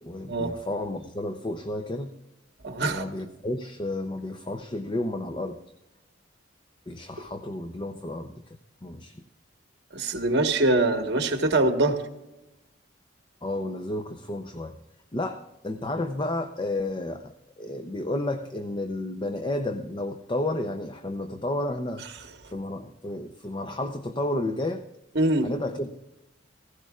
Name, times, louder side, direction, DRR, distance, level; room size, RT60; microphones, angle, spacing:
voice 1, 0.0-2.1 2.9-5.6 6.9-9.2 13.4-14.8 15.1-22.0 22.5-24.8 25.4-25.9, left 1 dB, 25° left, 8 dB, 0.6 m, -32 dB
voice 2, 2.6-3.0 9.9-12.0 25.1-25.5, right 2 dB, 60° right, 5 dB, 1.4 m, -23 dB
16.5 x 16.0 x 2.4 m, 0.94 s
head